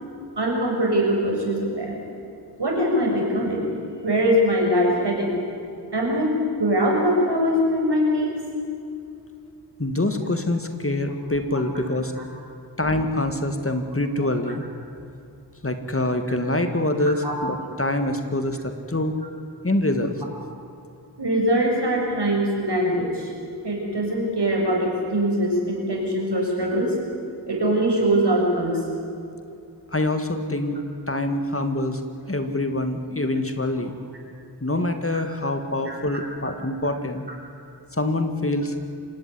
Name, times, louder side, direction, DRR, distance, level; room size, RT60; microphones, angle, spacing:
voice 1, 0.3-2.0 2.6-3.7 4.0-5.4 5.9-6.3 6.6-8.4 12.2-12.3 14.5-14.6 17.2-17.3 21.2-23.3 23.6-27.0 27.5-28.8 35.9-36.3, equal, 80° right, -1 dB, 6.9 m, -22 dB
voice 2, 9.8-12.1 12.8-14.6 15.6-19.2 19.6-20.2 29.9-30.8 31.1-32.0 32.3-33.9 34.6-37.2 37.9-38.7, left 1 dB, 35° left, 7 dB, 2.2 m, -25 dB
27.0 x 17.5 x 9.9 m, 2.6 s
wide cardioid pair, 55°, 41 cm